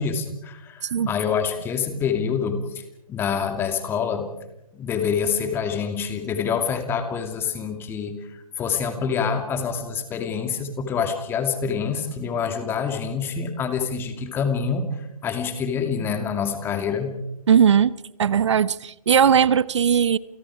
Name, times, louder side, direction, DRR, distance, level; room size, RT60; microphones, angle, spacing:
voice 1, 0.0-2.8 3.1-4.3 4.7-14.9 15.2-17.1, left 6 dB, 10° left, 6 dB, 2.6 m, -26 dB
voice 2, 17.5-17.9 18.2-20.2, right 8 dB, 50° right, 19 dB, 1.0 m, -18 dB
30.0 x 28.5 x 4.9 m, 0.89 s
figure-of-eight pair, 145°, 20 cm